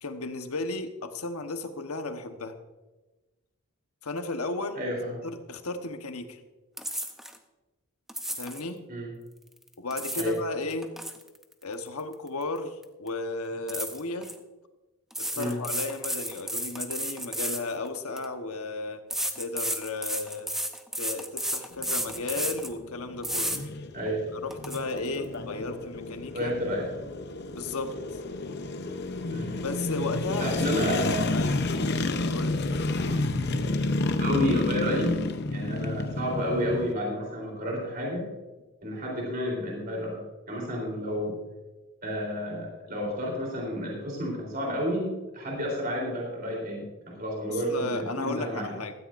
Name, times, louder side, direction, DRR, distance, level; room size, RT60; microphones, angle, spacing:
voice 1, 0.0-2.5 4.0-4.8 5.2-6.4 8.4-8.8 9.8-10.9 11.6-14.3 15.2-19.0 19.4-20.5 21.0-23.6 24.3-26.5 27.6-28.2 29.6-30.6 31.3-31.6 32.3-32.6 40.7-40.9 47.7-48.9, left 3 dB, 85° left, 6 dB, 1.2 m, -34 dB
voice 2, 4.8-5.2 8.9-9.1 10.1-10.4 15.3-15.6 23.9-24.2 26.3-26.8 29.3-29.6 30.4-31.3 33.0-33.2 34.1-35.2 35.5-38.2 38.8-40.2 40.5-41.4 42.0-48.7, equal, 40° right, -2 dB, 3.6 m, -31 dB
sound 1, 6.8-7.4 8.1-8.6 9.7-10.4 10.7-12.6 12.8-13.1 13.7-14.3 15.1-18.3 19.1-22.7 23.2-23.6 24.1-24.2 24.5-24.8, equal, ahead, 0.7 m, -32 dB
sound 2, 21.7-36.9, left 2 dB, 50° left, 0.7 m, -30 dB
16.0 x 13.5 x 2.6 m, 1.1 s
head